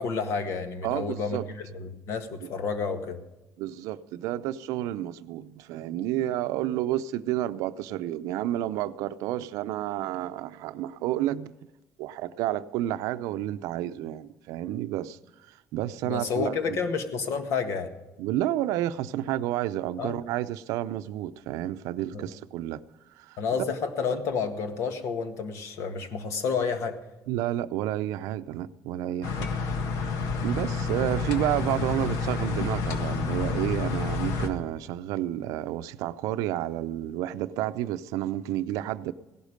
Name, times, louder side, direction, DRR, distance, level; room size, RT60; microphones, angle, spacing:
voice 1, 0.0-3.2 16.1-17.9 20.0-20.2 22.1-22.2 23.4-27.0, left 5 dB, 55° left, 1.7 m, -30 dB
voice 2, 0.8-1.5 2.4-2.5 3.6-11.5 12.0-16.8 18.2-22.8 23.2-23.4 27.3-29.5 30.4-39.1, right 13 dB, 85° right, 0.6 m, -30 dB
sound 1, 29.2-34.5, left 4 dB, 75° left, 1.7 m, -29 dB
17.0 x 12.0 x 5.1 m
cardioid pair, 150°, 6 cm